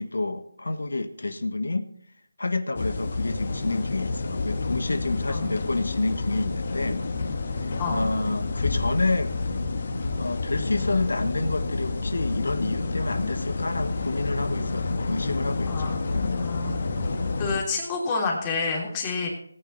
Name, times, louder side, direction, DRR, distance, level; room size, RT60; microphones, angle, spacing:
voice 1, 0.0-1.9 2.4-7.0 7.6-9.3 10.2-16.4, left 2 dB, 80° left, 9 dB, 1.5 m, -29 dB
sound 1, 2.7-17.6, left 3 dB, 45° left, 1.7 m, -29 dB
voice 2, 15.7-16.0 16.3-16.8 17.4-19.3, left 4 dB, 15° left, -2 dB, 3.2 m, -28 dB
18.5 x 9.1 x 4.2 m, 0.66 s
figure-of-eight pair, 170°, 0 cm